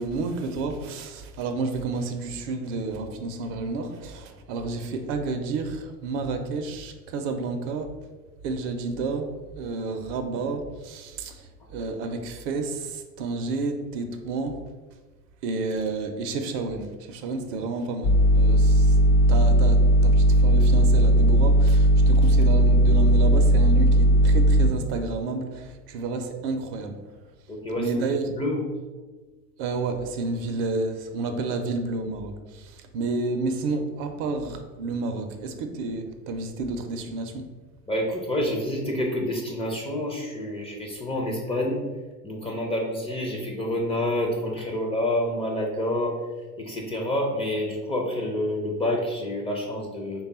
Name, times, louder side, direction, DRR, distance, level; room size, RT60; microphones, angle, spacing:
voice 1, 0.0-7.9 8.4-14.6 15.4-19.0 19.3-27.0 27.8-28.2 29.6-37.5, right 3 dB, 50° right, 0.5 m, -30 dB
sound 1, 18.0-24.7, equal, 60° left, 0.9 m, -17 dB
voice 2, 27.5-27.9 28.2-28.7 37.9-41.8 42.2-46.2 46.6-50.2, left 1 dB, 15° left, 0.4 m, -28 dB
3.4 x 2.3 x 4.1 m
hypercardioid pair, 80°, 46 cm